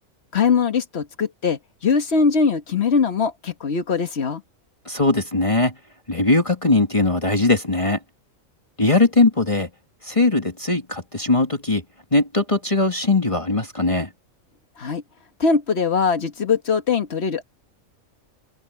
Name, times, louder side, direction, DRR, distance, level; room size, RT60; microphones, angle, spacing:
voice 1, 0.3-4.4 14.8-15.0 15.4-17.4, left 5 dB, 50° left, 1.7 m, -21 dB
voice 2, 4.9-5.7 6.1-8.0 8.8-9.7 10.0-11.8 12.1-14.1, left 2 dB, 25° left, 2.0 m, -20 dB
open air
omnidirectional pair, 1.4 m